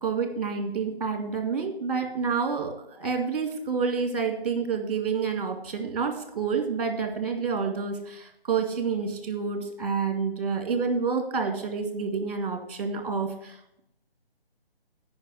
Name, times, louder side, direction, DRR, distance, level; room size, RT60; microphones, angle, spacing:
voice 1, 0.0-13.8, right 5 dB, 40° right, 5 dB, 2.1 m, -28 dB
8.7 x 5.6 x 7.7 m, 0.79 s
figure-of-eight pair, 160°, 31 cm